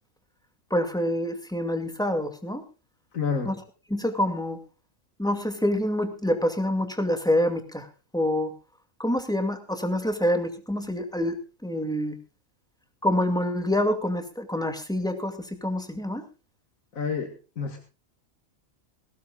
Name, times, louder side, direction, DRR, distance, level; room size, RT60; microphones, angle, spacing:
voice 1, 0.7-2.7 3.4-3.5 3.9-4.6 5.2-7.9 8.1-8.5 9.0-12.2 13.0-16.2, left 1 dB, 5° left, 7 dB, 2.3 m, -26 dB
voice 2, 3.1-3.5 16.9-17.8, left 5 dB, 85° left, 4 dB, 2.2 m, -29 dB
21.0 x 17.0 x 2.4 m, 0.32 s
omnidirectional pair, 1.4 m